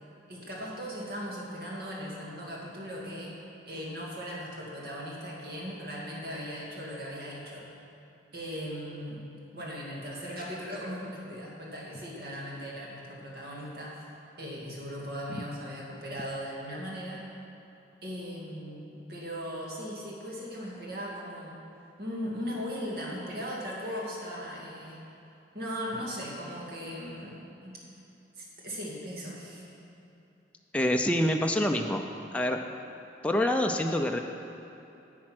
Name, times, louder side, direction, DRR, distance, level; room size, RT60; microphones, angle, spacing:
voice 1, 0.3-3.3 3.7-7.7 8.3-17.2 18.0-21.6 22.0-25.0 25.5-27.8 28.4-29.7, equal, 60° right, -4 dB, 2.1 m, -38 dB
voice 2, 30.7-32.0 32.3-32.6 33.2-34.2, left 1 dB, 5° left, 2 dB, 0.4 m, -26 dB
10.5 x 7.5 x 5.9 m, 2.8 s
head